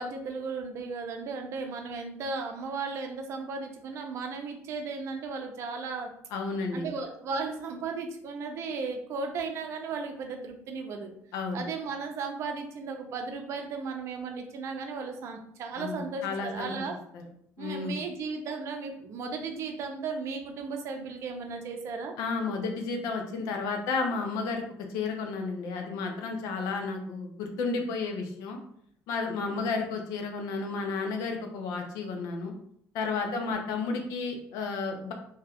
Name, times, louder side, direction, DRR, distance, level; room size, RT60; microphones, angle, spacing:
voice 1, 0.0-6.1 6.7-11.1 11.5-16.9 17.6-22.1 33.2-33.6, right 4 dB, 55° right, 4 dB, 0.6 m, -35 dB
voice 2, 6.3-6.9 11.3-11.6 15.8-17.2 17.6-18.0 22.2-24.6 24.9-28.6 29.1-32.5 32.9-35.1, left 4 dB, 90° left, 3 dB, 0.6 m, -32 dB
2.8 x 2.3 x 3.4 m, 0.67 s
cardioid pair, 145°, 6 cm